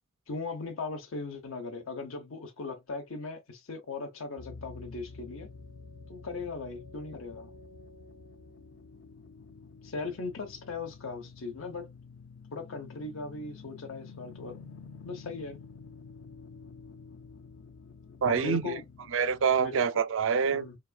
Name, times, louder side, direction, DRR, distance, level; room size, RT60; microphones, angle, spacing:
voice 1, 0.3-5.5 6.1-7.5 9.8-11.9 12.5-14.6 15.0-15.6 18.3-18.8 19.6-19.8 20.5-20.8, left 4 dB, 85° left, 0.9 m, -38 dB
sound 1, 4.4-19.8, left 4 dB, 65° left, 0.4 m, -49 dB
voice 2, 18.2-18.8 19.1-20.7, right 6 dB, 70° right, 0.4 m, -26 dB
3.8 x 2.4 x 2.3 m
head